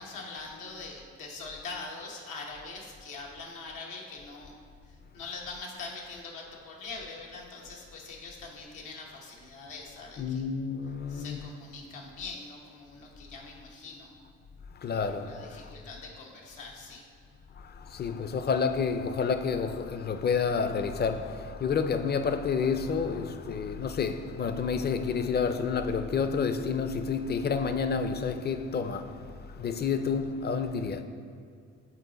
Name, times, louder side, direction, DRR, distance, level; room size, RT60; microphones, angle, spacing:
voice 1, 0.0-4.6 4.9-10.4 11.1-14.1 15.3-17.1, left 3 dB, 90° left, 1.1 m, -43 dB
voice 2, 10.2-11.5 14.7-15.7 17.6-31.0, left 5 dB, 35° left, 0.4 m, -29 dB
7.1 x 4.1 x 4.0 m
cardioid pair, 90°, 30 cm